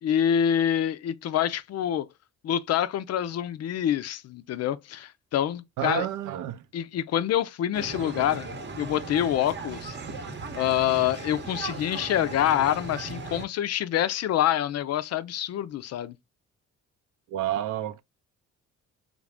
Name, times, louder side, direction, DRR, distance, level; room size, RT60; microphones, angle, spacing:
voice 1, 0.0-2.1 2.4-6.1 6.7-8.5 8.8-10.0 10.5-16.1, left 10 dB, 55° left, 0.4 m, -26 dB
voice 2, 5.8-6.7 10.2-10.3 17.3-18.0, right 12 dB, 75° right, 0.5 m, -30 dB
sound 1, 7.7-13.5, right 4 dB, 35° right, 0.8 m, -37 dB
3.4 x 2.5 x 3.2 m
cardioid pair, 90°, 30 cm